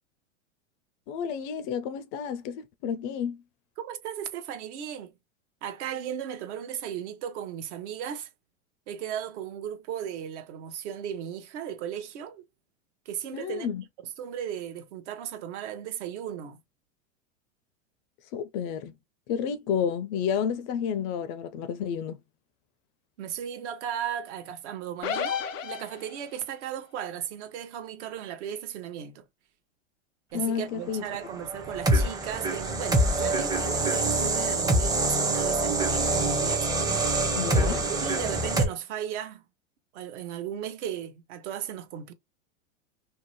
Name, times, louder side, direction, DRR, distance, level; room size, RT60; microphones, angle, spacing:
voice 1, 1.1-3.4 13.3-13.8 18.3-18.9 19.3-22.2 30.3-31.0 37.4-37.8, left 7 dB, 40° left, 0.4 m, -30 dB
voice 2, 3.8-5.1 5.6-8.3 8.9-12.4 13.1-13.7 14.0-16.6 23.2-29.2 30.3-36.7 37.6-39.4 39.9-42.1, right 9 dB, 65° right, 0.8 m, -36 dB
sound 1, 25.0-26.4, left 7 dB, 85° left, 0.7 m, -32 dB
sound 2, 31.3-38.7, right 2 dB, 10° right, 0.5 m, -25 dB
2.7 x 2.0 x 2.9 m
hypercardioid pair, 115°, 38 cm